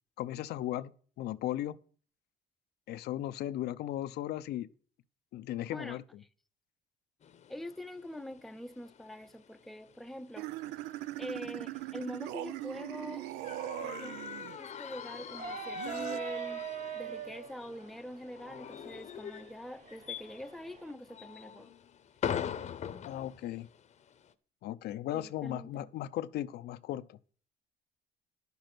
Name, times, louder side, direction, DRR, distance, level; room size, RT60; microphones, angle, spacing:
voice 1, 0.2-0.9 1.2-1.8 2.9-4.7 5.3-6.0 23.0-23.7 24.6-27.2, left 13 dB, 75° left, 0.6 m, -36 dB
sound 1, 7.2-24.3, left 8 dB, 45° left, 0.8 m, -44 dB
voice 2, 7.5-10.5 11.2-13.3 13.8-14.2 14.6-16.7 16.9-21.7 25.1-25.9, equal, ahead, 0.6 m, -44 dB
sound 2, 10.4-14.6 15.8-16.2, right 16 dB, 90° right, 0.5 m, -40 dB
sound 3, 15.3-20.9, right 7 dB, 45° right, 0.8 m, -43 dB
11.0 x 6.9 x 6.0 m
cardioid pair, 110°, 17 cm